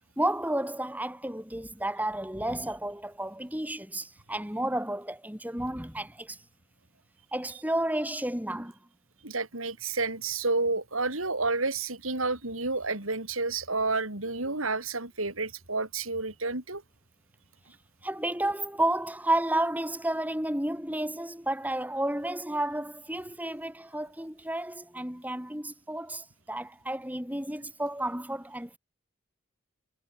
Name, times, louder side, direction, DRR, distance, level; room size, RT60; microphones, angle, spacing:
voice 1, 0.2-6.4 7.3-8.7 18.0-28.8, right 1 dB, 10° right, 7.6 m, -31 dB
voice 2, 9.2-16.8, right 3 dB, 85° right, 6.7 m, -30 dB
head